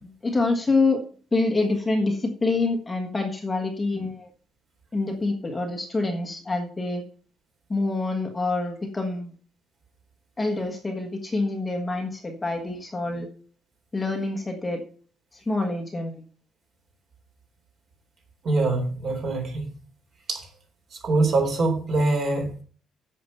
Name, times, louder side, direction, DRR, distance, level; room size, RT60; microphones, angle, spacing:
voice 1, 0.0-1.0 1.3-4.3 4.9-7.0 7.7-9.3 10.4-13.3 13.9-14.8 15.3-16.2, left 3 dB, 10° left, 3 dB, 1.4 m, -26 dB
voice 2, 18.4-19.7 20.3-20.4 21.0-22.6, right 3 dB, 40° right, 4 dB, 3.8 m, -24 dB
11.0 x 7.8 x 5.5 m, 0.42 s
cardioid pair, 175°, 0 cm